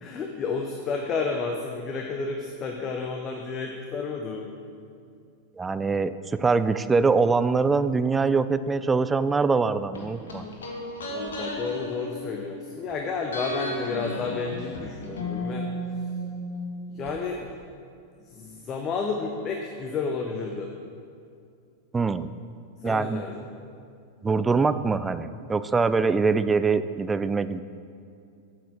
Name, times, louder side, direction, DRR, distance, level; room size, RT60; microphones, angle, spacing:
voice 1, 0.0-4.5 11.1-15.7 16.9-17.5 18.3-20.7 22.8-23.4, left 4 dB, 30° left, 2 dB, 0.7 m, -31 dB
voice 2, 5.6-10.5 21.9-22.3 22.8-23.2 24.2-27.6, right 4 dB, 15° right, 13 dB, 0.3 m, -23 dB
sound 1, 9.9-12.9 13.3-17.1 17.4-17.5, left 1 dB, 65° left, 1.4 m, -34 dB
8.0 x 6.5 x 6.1 m, 2.4 s
figure-of-eight pair, 90°, 0 cm